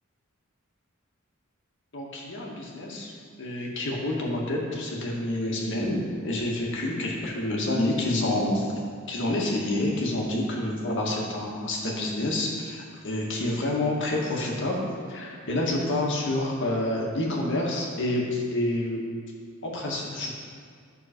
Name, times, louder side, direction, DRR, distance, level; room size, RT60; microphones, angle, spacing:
voice 1, 1.9-3.1 3.4-8.7 9.1-14.8 15.1-19.0 19.6-20.3, left 1 dB, 60° left, -2 dB, 1.8 m, -28 dB
11.5 x 6.7 x 4.6 m, 2.1 s
head